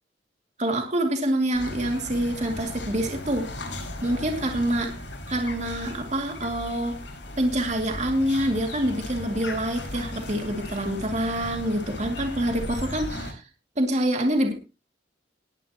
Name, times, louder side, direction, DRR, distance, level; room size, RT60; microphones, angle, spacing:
voice 1, 0.6-3.5 4.0-4.9 5.3-7.0 7.4-13.4 13.8-14.5, right 1 dB, 40° right, 3 dB, 2.4 m, -26 dB
sound 1, 1.5-13.3, left 1 dB, 90° left, 5.3 m, -37 dB
19.5 x 10.5 x 2.9 m, 0.31 s
head